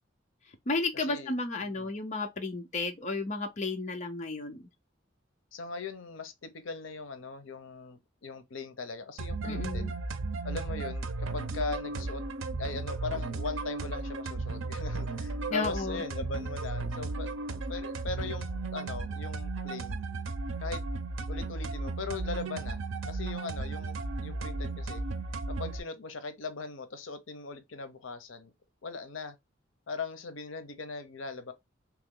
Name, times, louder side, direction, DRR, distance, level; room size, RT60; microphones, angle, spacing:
voice 1, 0.7-4.7 9.4-9.9 15.5-16.0, left 3 dB, 40° left, 0.6 m, -33 dB
voice 2, 5.5-9.9 10.4-12.2 12.6-17.3 17.7-20.0 20.6-20.8 21.3-25.0 25.5-28.5 28.8-29.4 29.9-31.5, left 4 dB, 80° left, 0.7 m, -39 dB
sound 1, 9.2-25.8, right 3 dB, 85° right, 0.6 m, -35 dB
3.1 x 2.9 x 3.7 m
head